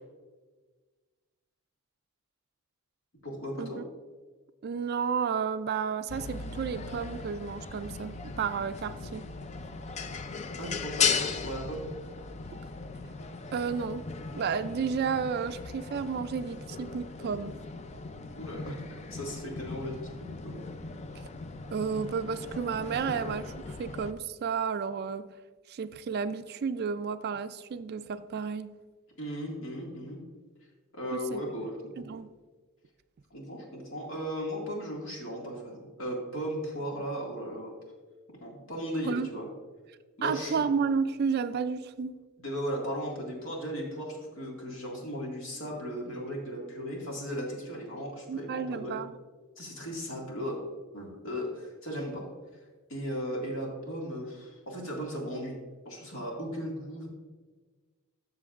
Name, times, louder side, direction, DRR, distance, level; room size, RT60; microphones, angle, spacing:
voice 1, 3.2-3.8 10.6-12.0 18.4-20.7 29.2-30.2 30.9-32.1 33.3-37.7 38.3-39.5 40.2-40.6 42.4-49.0 49.6-50.6 50.9-52.3 52.9-55.6 55.8-57.1, equal, 70° left, -1 dB, 2.0 m, -36 dB
voice 2, 4.6-9.2 13.5-14.0 14.3-17.6 21.7-25.3 25.7-28.7 31.3-31.4 32.0-32.3 39.1-39.3 40.2-42.2 48.3-49.1, right 6 dB, 50° right, 12 dB, 0.3 m, -32 dB
sound 1, 6.1-24.1, left 5 dB, 30° left, 0.4 m, -37 dB
12.5 x 6.7 x 2.4 m, 1.4 s
head